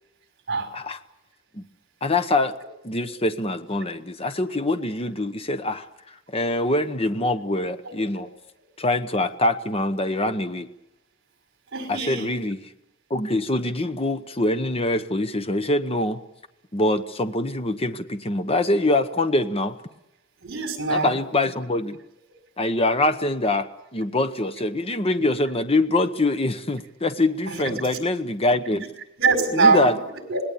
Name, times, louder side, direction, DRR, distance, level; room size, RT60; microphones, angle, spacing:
voice 1, 2.0-2.5 2.8-8.3 8.8-10.7 11.9-12.6 13.1-16.2 16.7-19.8 20.9-22.0 22.6-28.8 29.5-29.9, left 2 dB, 30° left, 10 dB, 1.0 m, -24 dB
voice 2, 11.7-12.3 20.4-21.1 27.5-27.8 28.8-28.9 29.2-30.4, right 4 dB, 55° right, 5 dB, 5.4 m, -23 dB
26.5 x 20.0 x 8.6 m, 0.87 s
head